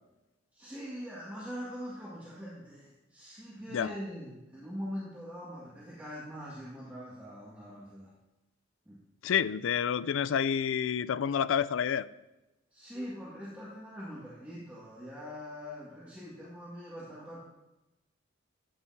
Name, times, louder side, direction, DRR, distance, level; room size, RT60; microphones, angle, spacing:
voice 1, 0.5-8.1 8.9-9.0 12.7-17.4, equal, 10° right, -9 dB, 2.1 m, -43 dB
voice 2, 9.2-12.1, left 8 dB, 70° left, 16 dB, 0.4 m, -29 dB
13.5 x 8.9 x 2.8 m, 1.0 s
head